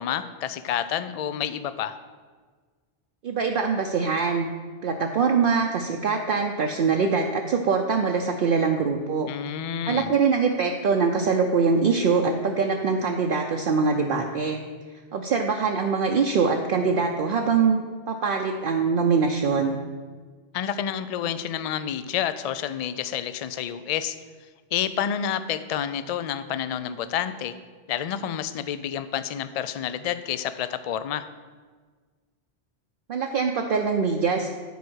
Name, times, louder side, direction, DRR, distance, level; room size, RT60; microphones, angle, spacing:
voice 1, 0.0-1.9 9.3-10.1 20.5-24.2 24.7-27.5 27.9-31.3, left 9 dB, 60° left, 12 dB, 0.4 m, -29 dB
voice 2, 3.2-4.5 4.8-9.3 9.9-14.6 15.1-17.8 18.1-19.8 33.1-34.5, right 5 dB, 60° right, 2 dB, 0.8 m, -23 dB
9.3 x 4.7 x 6.2 m, 1.5 s
omnidirectional pair, 1.1 m